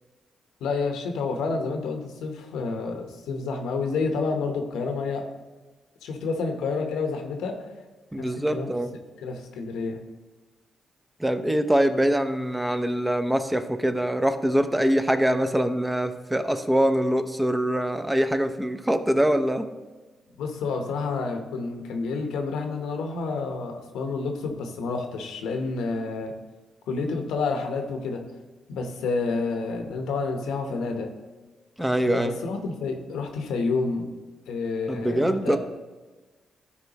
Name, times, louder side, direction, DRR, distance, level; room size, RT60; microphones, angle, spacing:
voice 1, 0.6-5.2 6.0-7.6 8.2-8.7 9.2-10.0 20.4-26.3 26.9-28.2 28.7-31.1 32.0-34.1 34.5-35.6, left 4 dB, 90° left, 4 dB, 0.9 m, -29 dB
voice 2, 8.1-8.9 11.2-19.7 31.8-32.4 34.9-35.6, right 1 dB, 10° right, 8 dB, 0.7 m, -24 dB
12.5 x 4.6 x 2.9 m, 1.3 s
cardioid pair, 65°, 0 cm